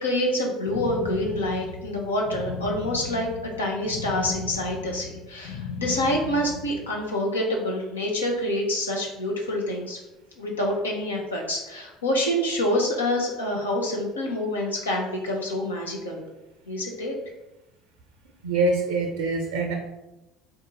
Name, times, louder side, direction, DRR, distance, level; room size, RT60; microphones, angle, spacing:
voice 1, 0.0-3.3 3.6-10.0 10.4-16.3 16.7-17.1, left 1 dB, 80° left, -1 dB, 0.8 m, -27 dB
sound 1, 0.6-7.0, left 5 dB, 55° left, 0.4 m, -36 dB
voice 2, 18.4-19.7, right 3 dB, 70° right, 3 dB, 0.4 m, -24 dB
3.9 x 2.7 x 3.8 m, 0.96 s
figure-of-eight pair, 60°, 0 cm